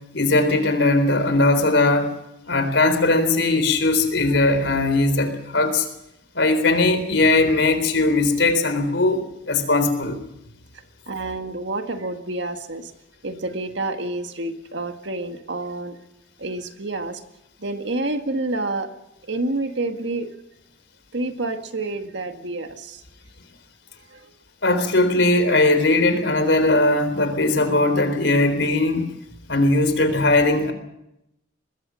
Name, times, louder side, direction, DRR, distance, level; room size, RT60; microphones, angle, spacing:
voice 1, 0.1-2.1 2.5-5.9 6.3-9.2 9.5-10.2 24.6-29.1 29.5-30.7, left 2 dB, 70° left, 9 dB, 3.9 m, -19 dB
voice 2, 11.1-12.9 13.2-16.0 16.4-17.2 17.6-18.9 19.2-20.3 21.1-23.0 24.1-24.3, right 2 dB, 70° right, 6 dB, 1.9 m, -28 dB
24.5 x 20.5 x 6.3 m, 0.85 s
head